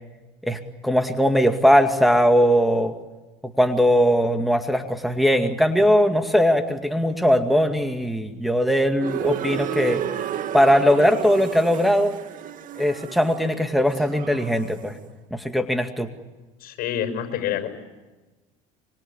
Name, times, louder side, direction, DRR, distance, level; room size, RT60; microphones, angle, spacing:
voice 1, 0.4-2.9 3.6-10.0 10.5-12.2 12.8-15.0 15.3-16.1, equal, ahead, 5 dB, 2.2 m, -20 dB
sound 1, 9.0-14.9, right 10 dB, 50° right, 2.2 m, -32 dB
voice 2, 16.6-17.7, left 9 dB, 60° left, 8 dB, 5.9 m, -27 dB
26.5 x 25.5 x 8.6 m, 1.2 s
supercardioid pair, 85°, 17 cm